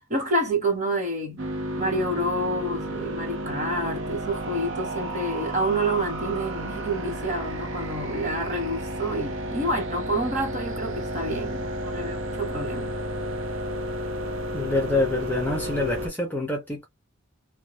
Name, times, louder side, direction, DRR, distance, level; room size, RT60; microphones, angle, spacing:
voice 1, 0.0-1.5 1.8-13.0, right 1 dB, 35° right, 1.1 m, -28 dB
sound 1, 1.4-16.1, equal, 65° right, 0.7 m, -32 dB
voice 2, 14.5-16.8, left 2 dB, 10° left, 0.6 m, -26 dB
2.3 x 2.2 x 3.1 m
head